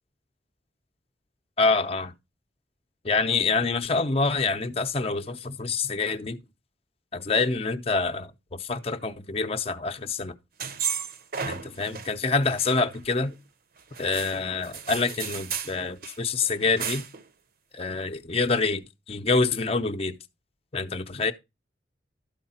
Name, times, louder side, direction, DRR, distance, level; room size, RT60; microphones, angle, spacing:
voice 1, 1.6-2.1 3.0-6.4 7.1-10.3 11.5-13.3 14.0-17.0 17.7-20.2 20.7-21.3, left 4 dB, 35° left, 0.7 m, -26 dB
sound 1, 10.6-12.1 12.4-13.3 13.9-15.8 16.0-16.2 16.4-17.2, right 7 dB, 55° right, 0.8 m, -34 dB
12.5 x 4.7 x 4.2 m
head